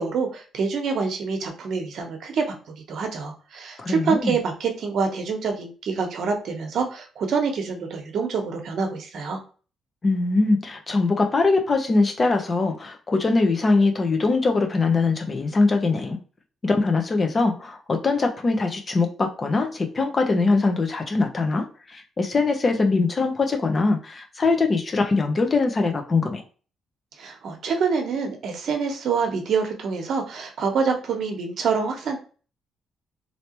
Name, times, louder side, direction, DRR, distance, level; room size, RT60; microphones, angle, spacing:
voice 1, 0.0-9.4 27.2-32.2, right 5 dB, 65° right, 4 dB, 0.9 m, -26 dB
voice 2, 3.8-4.3 10.0-16.2 16.6-26.4, left 3 dB, 35° left, 5 dB, 0.7 m, -22 dB
3.3 x 2.8 x 2.9 m, 0.37 s
cardioid pair, 90°, 0 cm